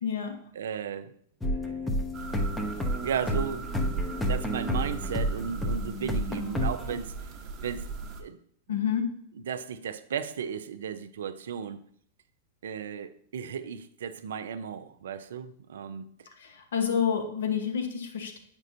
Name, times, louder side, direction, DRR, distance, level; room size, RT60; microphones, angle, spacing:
voice 1, 0.0-0.4 8.7-9.1 16.4-18.4, left 7 dB, 70° left, 1.0 m, -29 dB
voice 2, 0.6-1.1 1.6-1.9 3.0-7.3 7.6-8.4 8.7-8.8 9.5-11.8 12.6-16.0, right 7 dB, 70° right, 0.5 m, -35 dB
sound 1, 1.4-7.0, equal, 10° left, 0.7 m, -30 dB
sound 2, 2.1-8.2, right 4 dB, 35° right, 1.0 m, -38 dB
8.2 x 5.2 x 2.6 m
hypercardioid pair, 100°, 0 cm